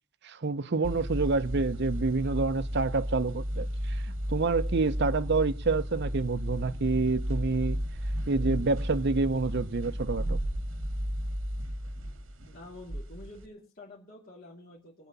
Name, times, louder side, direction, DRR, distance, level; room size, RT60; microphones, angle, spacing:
voice 1, 0.2-4.0 4.3-7.8 8.3-10.4, right 3 dB, 60° right, 0.7 m, -28 dB
sound 1, 0.8-13.5, equal, 85° right, 2.0 m, -33 dB
voice 2, 12.5-15.1, left 2 dB, 50° left, 2.9 m, -48 dB
23.0 x 8.1 x 4.1 m
head